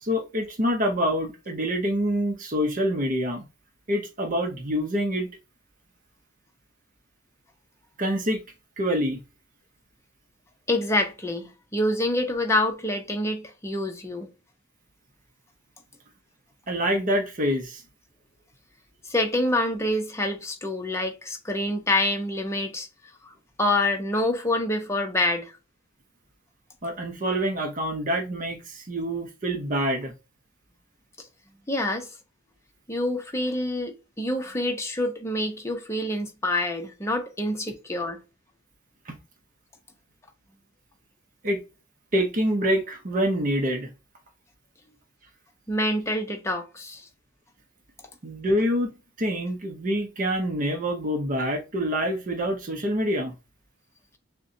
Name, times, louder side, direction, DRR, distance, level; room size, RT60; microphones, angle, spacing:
voice 1, 0.0-3.4 3.9-5.3 8.0-8.4 8.8-9.2 16.7-17.8 26.8-30.1 39.1-39.2 41.4-41.6 42.1-43.9 48.2-53.3, equal, 40° right, 0.7 m, -26 dB
voice 2, 10.7-14.3 19.1-22.9 23.3-23.4 23.6-25.5 31.7-32.1 32.9-38.2 45.7-47.1, left 1 dB, 15° left, 0.7 m, -26 dB
6.5 x 2.2 x 2.6 m
head